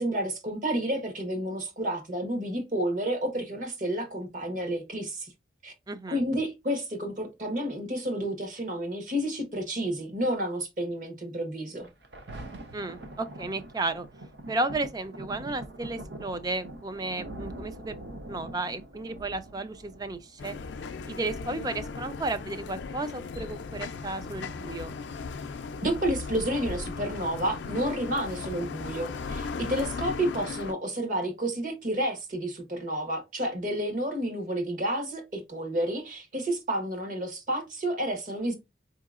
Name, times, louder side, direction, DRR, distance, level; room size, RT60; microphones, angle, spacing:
voice 1, 0.0-5.3 5.6-5.7 6.1-11.9 25.8-38.5, right 1 dB, 45° right, 1.1 m, -30 dB
voice 2, 5.9-6.2 12.7-14.1 14.5-17.9 18.3-20.6 21.1-24.9, right 2 dB, 20° right, 0.3 m, -33 dB
Thunder, 11.8-22.8 23.4-23.5, right 1 dB, 65° right, 0.7 m, -44 dB
sound 1, 20.4-30.7, left 4 dB, 75° left, 0.4 m, -37 dB
4.7 x 2.8 x 2.4 m
head